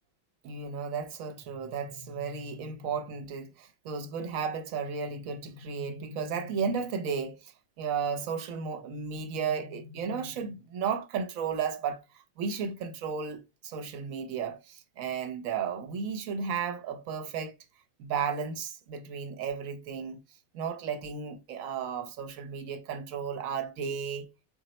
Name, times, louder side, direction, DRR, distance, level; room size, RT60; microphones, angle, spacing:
voice 1, 0.4-7.5 7.8-12.0 12.4-17.5 18.0-20.2 20.5-24.3, right 6 dB, 80° right, 1.0 m, -34 dB
sound 1, 1.4-3.3 5.1-7.0 8.8-10.7, left 4 dB, 60° left, 0.9 m, -49 dB
4.2 x 2.0 x 4.0 m
omnidirectional pair, 1.4 m